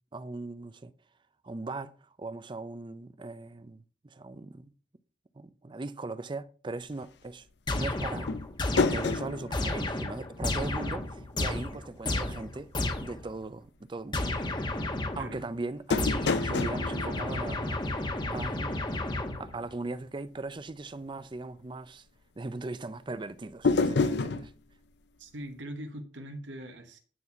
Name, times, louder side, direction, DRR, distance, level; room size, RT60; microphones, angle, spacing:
voice 1, 0.1-0.9 1.4-1.9 2.2-4.7 5.4-7.5 7.7-8.3 8.8-12.7 13.0-14.3 15.2-18.8 19.4-22.1 22.4-24.5, right 3 dB, 25° right, 0.5 m, -39 dB
sound 1, 7.7-13.3 14.1-15.4 16.0-19.7, left 2 dB, 25° left, 1.1 m, -32 dB
sound 2, 8.3-10.9 11.2-11.3 15.9-18.4 23.6-24.5, left 4 dB, 65° left, 0.6 m, -30 dB
voice 2, 15.1-15.5 25.2-27.0, right 1 dB, 80° right, 1.2 m, -41 dB
9.3 x 4.1 x 5.7 m
head